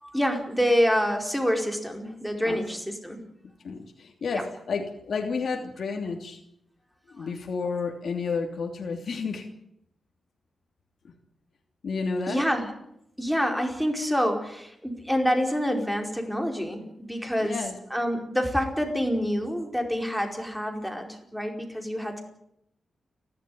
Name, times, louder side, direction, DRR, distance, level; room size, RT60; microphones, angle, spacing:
voice 1, 0.0-3.2 4.3-4.4 7.2-7.3 12.3-12.7 13.2-17.5 17.9-22.2, equal, ahead, 3 dB, 4.8 m, -27 dB
voice 2, 3.6-6.4 7.1-9.5 11.0-11.1 11.8-12.4 17.4-17.8, left 4 dB, 60° left, 2 dB, 3.0 m, -31 dB
30.0 x 13.0 x 9.5 m, 0.78 s
wide cardioid pair, 110°, 0 cm